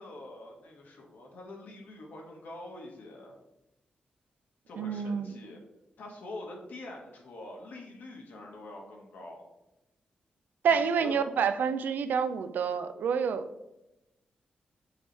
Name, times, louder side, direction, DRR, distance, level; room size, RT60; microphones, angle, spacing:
voice 1, 0.0-3.3 4.7-5.6 6.0-9.4 10.7-11.3, left 2 dB, 75° left, 0 dB, 1.4 m, -45 dB
voice 2, 4.8-5.4 10.6-13.5, right 6 dB, 85° right, 11 dB, 0.4 m, -28 dB
7.2 x 3.2 x 4.1 m, 0.93 s
wide cardioid pair, 150°, 3 cm